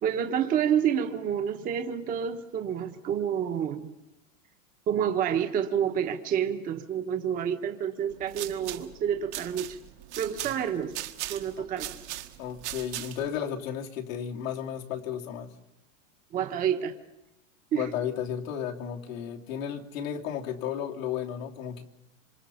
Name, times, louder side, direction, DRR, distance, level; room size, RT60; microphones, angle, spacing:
voice 1, 0.0-3.9 4.9-9.8 10.2-10.9 11.3-11.9 16.3-16.9 17.7-17.9, right 8 dB, 20° right, 6 dB, 1.2 m, -28 dB
sound 1, 8.1-13.4, right 15 dB, 60° right, 1.8 m, -39 dB
voice 2, 12.4-15.5 17.7-21.8, left 9 dB, 90° left, 0 dB, 3.2 m, -33 dB
26.5 x 26.0 x 5.8 m, 0.95 s
supercardioid pair, 165°, 39 cm